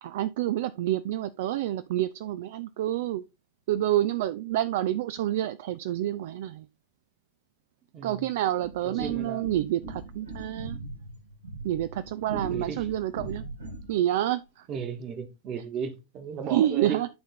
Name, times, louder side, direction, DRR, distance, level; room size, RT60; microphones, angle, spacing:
voice 1, 0.0-3.2 3.7-6.6 8.0-10.8 11.6-13.4 13.9-14.4 16.5-17.1, right 13 dB, 55° right, 0.4 m, -28 dB
voice 2, 7.9-8.3 8.8-9.5 12.5-12.9 14.7-17.0, right 6 dB, 35° right, 1.5 m, -35 dB
sound 1, 8.6-14.0, right 3 dB, 80° right, 1.8 m, -39 dB
9.4 x 3.8 x 4.1 m
figure-of-eight pair, 90°, 0 cm